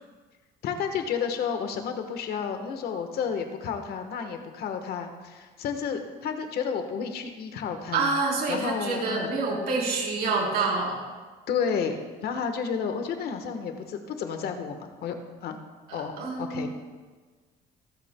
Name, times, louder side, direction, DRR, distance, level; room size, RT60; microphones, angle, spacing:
voice 1, 0.6-8.1 8.5-9.3 11.5-15.2 15.4-15.5 15.9-16.1 16.4-16.7, left 6 dB, 70° left, 6 dB, 1.3 m, -31 dB
voice 2, 7.9-11.0 15.9-16.7, right 3 dB, 70° right, -2 dB, 3.7 m, -27 dB
24.5 x 8.4 x 2.2 m, 1.4 s
cardioid pair, 110°, 17 cm